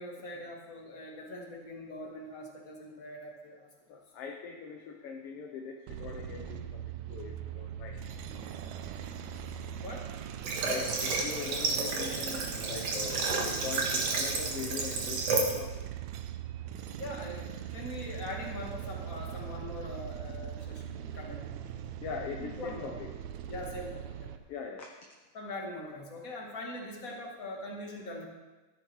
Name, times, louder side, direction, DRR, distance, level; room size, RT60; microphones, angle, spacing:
voice 1, 0.0-4.0 9.8-10.1 17.0-21.4 22.4-22.9 23.5-24.3 25.3-28.3, left 1 dB, 30° left, -1 dB, 2.2 m, -42 dB
voice 2, 3.9-6.8 7.1-8.0 10.6-15.8 22.0-23.1 24.5-24.9, left 5 dB, 65° left, 2 dB, 1.7 m, -41 dB
sound 1, 5.9-24.4, right 9 dB, 75° right, 1.9 m, -41 dB
Water / Water tap faucet, 10.4-15.6, right 3 dB, 60° right, 2.5 m, -31 dB
13.5 x 11.0 x 4.7 m, 1.2 s
omnidirectional pair, 3.5 m